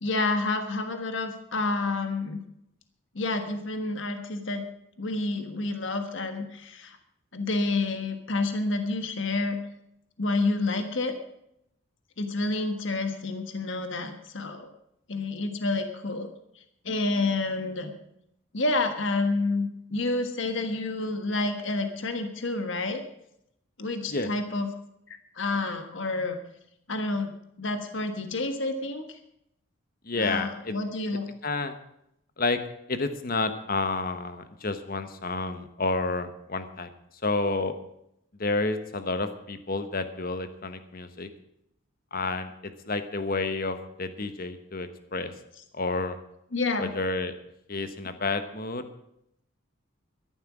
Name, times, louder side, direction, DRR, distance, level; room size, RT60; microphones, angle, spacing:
voice 1, 0.0-2.4 3.1-4.6 5.0-7.0 7.3-9.6 10.2-11.1 12.2-14.7 15.1-16.3 16.5-17.9 18.5-23.0 23.8-24.7 25.1-26.4 26.9-27.3 27.6-29.2 30.1-31.3 46.5-46.9, left 2 dB, 60° left, 7 dB, 1.4 m, -29 dB
voice 2, 30.0-30.8 31.4-31.7 32.4-32.6 32.9-36.9 37.2-37.7 38.4-41.3 42.1-45.3 45.7-46.2 46.8-47.3 47.7-48.8, left 3 dB, 45° left, 9 dB, 1.2 m, -30 dB
13.5 x 11.5 x 6.1 m, 0.78 s
head